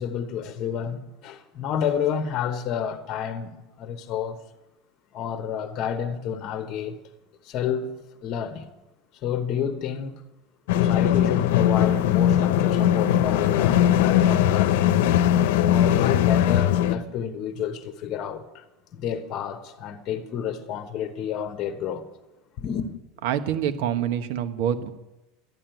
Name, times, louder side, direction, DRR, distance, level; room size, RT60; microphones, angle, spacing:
voice 1, 0.0-4.4 5.1-7.0 7.4-7.9 8.2-8.7 9.1-10.2 10.7-15.0 15.6-18.6 18.9-22.0 22.6-22.9, left 8 dB, 35° left, 1.2 m, -30 dB
sound 1, 10.7-17.0, left 11 dB, 75° left, 0.9 m, -20 dB
voice 2, 23.2-24.9, right 9 dB, 60° right, 1.3 m, -26 dB
12.5 x 11.0 x 9.1 m
supercardioid pair, 170°, 0 cm